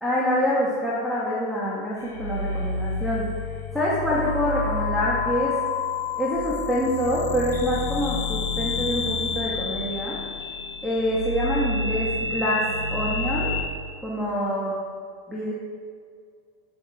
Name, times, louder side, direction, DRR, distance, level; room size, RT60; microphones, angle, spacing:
voice 1, 0.0-3.3 3.7-5.6 6.2-10.2 10.8-13.5 14.0-14.8 15.3-15.5, equal, ahead, -7 dB, 2.4 m, -26 dB
sound 1, 2.0-13.6, left 3 dB, 80° left, 1.6 m, -29 dB
9.8 x 9.2 x 4.7 m, 2.1 s
hypercardioid pair, 90°, 0 cm